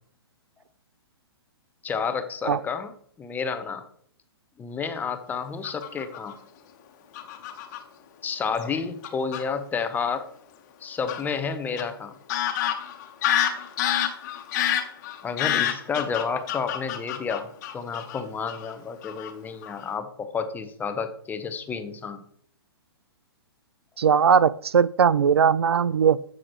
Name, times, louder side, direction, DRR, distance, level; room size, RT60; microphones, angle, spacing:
voice 1, 1.8-3.9 4.6-6.4 8.2-10.3 10.8-12.2 15.2-22.2, left 5 dB, 15° left, 9 dB, 0.8 m, -30 dB
Fowl / Bird vocalization bird call bird song, 5.6-6.3 7.1-7.8 8.6-8.7 9.0-9.4 11.1-11.2 11.8-11.9 12.3-18.2 18.5-18.7 19.0-19.3 19.6-19.9, left 11 dB, 45° left, 1.3 m, -27 dB
voice 2, 24.0-26.2, right 7 dB, 75° right, 21 dB, 0.4 m, -19 dB
14.5 x 6.3 x 3.1 m, 0.62 s
figure-of-eight pair, 120°, 13 cm